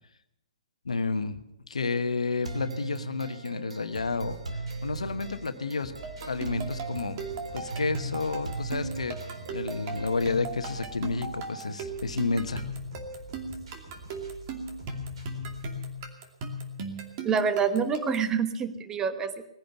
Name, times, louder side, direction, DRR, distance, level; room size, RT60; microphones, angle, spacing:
voice 1, 0.8-1.4 1.7-4.4 4.8-5.9 6.2-7.2 7.5-9.2 9.5-12.6, left 4 dB, 80° left, 9 dB, 1.2 m, -30 dB
sound 1, 2.4-10.4, right 3 dB, 85° right, 2.5 m, -39 dB
sound 2, 3.9-15.9, right 3 dB, 60° right, 6.2 m, -46 dB
sound 3, 6.0-18.3, right 2 dB, 35° right, 2.5 m, -37 dB
voice 2, 17.2-19.4, right 6 dB, 15° right, 10 dB, 1.2 m, -27 dB
19.5 x 10.5 x 6.9 m, 0.84 s
figure-of-eight pair, 130°, 3 cm